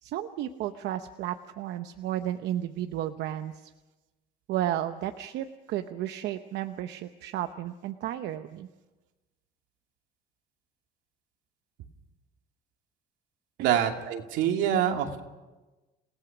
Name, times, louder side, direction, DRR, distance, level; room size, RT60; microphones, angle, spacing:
voice 1, 0.0-3.7 4.5-8.7 13.6-14.1, right 12 dB, 65° right, 8 dB, 0.9 m, -33 dB
voice 2, 13.6-15.2, right 9 dB, 80° right, 3 dB, 2.5 m, -26 dB
28.5 x 18.0 x 6.1 m, 1.1 s
cardioid pair, 165°, 19 cm